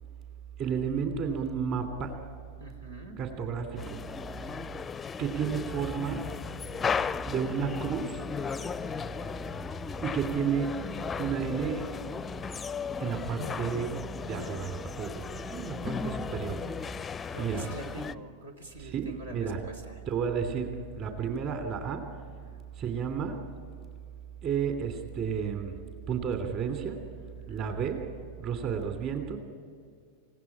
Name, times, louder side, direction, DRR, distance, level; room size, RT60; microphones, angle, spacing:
voice 1, 0.6-2.2 3.2-4.0 5.2-6.3 7.2-8.2 10.0-10.8 11.2-11.9 13.0-14.0 14.3-16.6 17.4-17.6 18.8-19.6 20.1-22.1 22.8-23.4 24.4-25.7 26.1-27.0 27.5-28.1 28.4-29.4, right 7 dB, 35° right, 6 dB, 3.0 m, -32 dB
voice 2, 2.6-3.2 4.3-4.7 16.2-16.5 17.3-20.0 22.4-22.6 27.3-27.7, right 1 dB, 75° right, 4 dB, 3.2 m, -46 dB
sound 1, 3.8-18.1, left 6 dB, 15° left, 0.5 m, -36 dB
28.0 x 17.0 x 10.0 m, 2.3 s
figure-of-eight pair, 90°, 0 cm